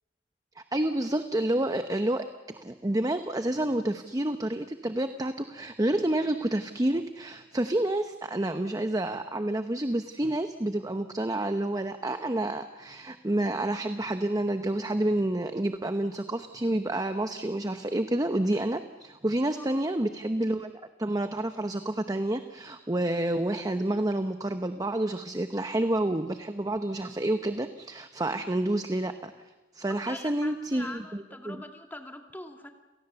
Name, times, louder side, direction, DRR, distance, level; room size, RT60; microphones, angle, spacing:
voice 1, 0.6-20.7 21.0-29.3 29.7-31.6, right 1 dB, 20° right, 8 dB, 0.9 m, -29 dB
voice 2, 30.0-32.7, left 1 dB, 10° left, 4 dB, 2.3 m, -43 dB
30.0 x 17.5 x 6.9 m, 1.2 s
head